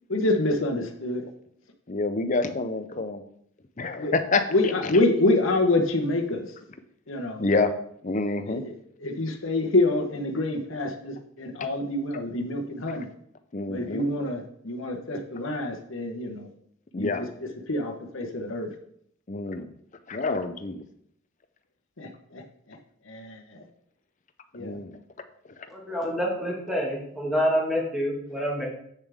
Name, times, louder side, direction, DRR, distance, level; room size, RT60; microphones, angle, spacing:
voice 1, 0.1-1.2 4.0-4.1 4.5-6.5 7.1-7.5 8.5-13.1 13.7-16.5 17.0-18.7 22.0-22.4 23.1-23.6 24.5-24.8, left 2 dB, 70° left, 3 dB, 1.1 m, -27 dB
voice 2, 1.9-3.2 3.8-4.5 7.4-7.7 8.0-8.6 13.5-14.1 16.9-17.2 19.3-19.7 20.1-20.8 24.6-24.9, left 3 dB, 35° left, 10 dB, 0.6 m, -27 dB
voice 3, 25.7-28.7, equal, ahead, -3 dB, 1.8 m, -27 dB
8.2 x 6.7 x 3.6 m, 0.69 s
head